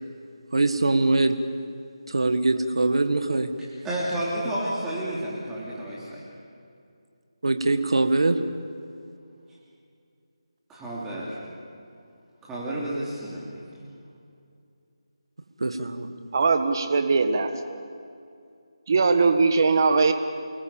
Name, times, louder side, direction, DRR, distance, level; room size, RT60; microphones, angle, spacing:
voice 1, 0.5-1.4 2.1-3.5 7.4-8.4 15.6-16.1, right 2 dB, 75° right, 8 dB, 1.8 m, -22 dB
voice 2, 3.8-6.2 10.7-11.4 12.4-13.9, right 1 dB, 5° right, -7 dB, 3.1 m, -31 dB
voice 3, 16.3-17.8 18.9-20.1, right 4 dB, 40° right, 7 dB, 1.6 m, -21 dB
29.5 x 20.0 x 7.3 m, 2.4 s
figure-of-eight pair, 170°, 3 cm